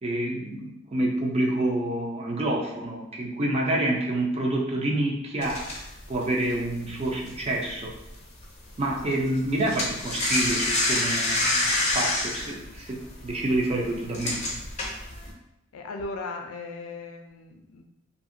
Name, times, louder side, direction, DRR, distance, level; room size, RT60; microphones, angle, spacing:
voice 1, 0.0-5.7 6.1-7.9 8.8-14.5, right 1 dB, 30° right, 0 dB, 0.5 m, -28 dB
sound 1, 5.4-8.1 8.4-8.7 9.0-15.3, left 2 dB, 30° left, 0.6 m, -27 dB
voice 2, 15.7-17.9, left 3 dB, 85° left, 4 dB, 0.4 m, -37 dB
2.8 x 2.6 x 2.5 m, 0.88 s
head